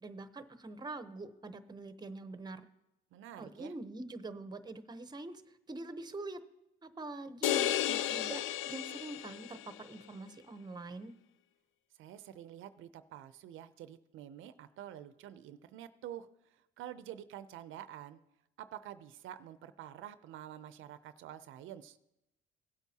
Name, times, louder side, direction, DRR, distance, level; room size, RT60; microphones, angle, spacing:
voice 1, 0.0-2.7 3.4-5.3 5.7-6.4 6.8-11.1, right 2 dB, 20° right, 11 dB, 0.8 m, -45 dB
voice 2, 3.1-3.7 12.0-18.2 18.6-22.0, right 11 dB, 85° right, 13 dB, 0.5 m, -48 dB
sound 1, 7.4-9.8, left 12 dB, 80° left, 0.4 m, -33 dB
16.5 x 8.2 x 2.8 m, 0.86 s
cardioid pair, 90°, 20 cm